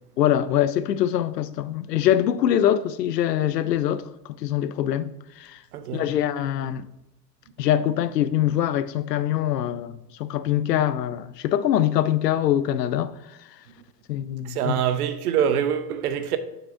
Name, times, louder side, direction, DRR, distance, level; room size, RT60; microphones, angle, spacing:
voice 1, 0.2-4.0 4.4-5.1 5.4-5.6 5.9-6.9 7.6-13.1 14.1-14.8, left 11 dB, 85° left, 0.6 m, -23 dB
voice 2, 5.7-6.1 14.4-16.4, right 8 dB, 70° right, 0.8 m, -25 dB
6.8 x 6.3 x 3.6 m
hypercardioid pair, 85°, 48 cm